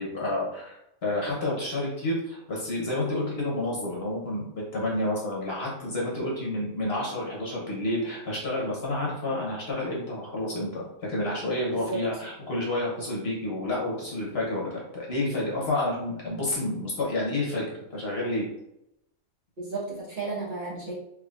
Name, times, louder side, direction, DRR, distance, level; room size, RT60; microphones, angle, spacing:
voice 1, 0.0-18.4, left 1 dB, 50° left, -4 dB, 1.1 m, -30 dB
voice 2, 19.6-20.9, right 3 dB, 40° right, -8 dB, 1.2 m, -33 dB
3.5 x 3.1 x 2.4 m, 0.82 s
omnidirectional pair, 1.4 m